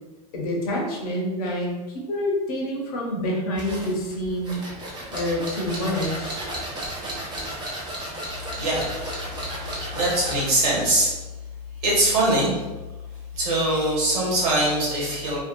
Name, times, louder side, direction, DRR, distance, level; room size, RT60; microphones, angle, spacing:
voice 1, 0.3-1.7 2.1-4.6 5.1-6.4, left 1 dB, 65° left, -1 dB, 0.9 m, -27 dB
sound 1, 3.6-10.6, right 1 dB, 20° right, 0.9 m, -33 dB
voice 2, 8.3-9.1 9.9-11.1 11.8-12.6 13.3-15.4, right 1 dB, 65° right, -5 dB, 1.3 m, -22 dB
2.6 x 2.4 x 2.5 m, 1.1 s
hypercardioid pair, 90°, 20 cm